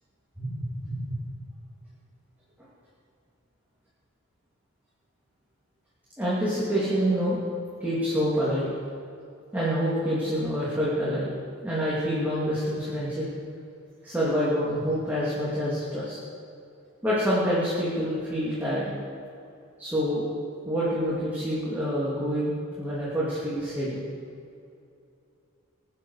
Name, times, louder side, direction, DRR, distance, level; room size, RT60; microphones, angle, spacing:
voice 1, 0.4-1.1 6.2-7.4 7.8-8.7 9.5-11.3 11.6-13.2 14.0-16.2 17.0-19.0 19.8-20.2 20.6-24.0, equal, 10° right, -9 dB, 2.9 m, -27 dB
21.0 x 8.5 x 6.5 m, 2.5 s
head